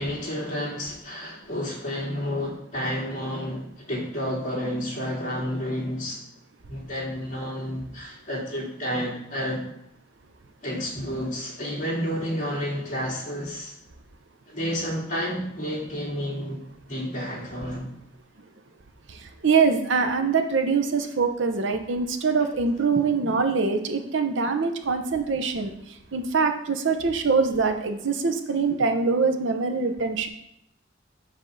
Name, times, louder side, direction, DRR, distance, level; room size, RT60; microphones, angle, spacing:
voice 1, 0.0-6.2 6.7-9.6 10.6-13.7 14.5-16.6 16.9-17.9, equal, 40° left, -5 dB, 2.5 m, -30 dB
voice 2, 19.4-25.7 26.1-30.3, right 4 dB, 65° right, 6 dB, 0.7 m, -23 dB
7.6 x 3.6 x 6.4 m, 0.74 s
head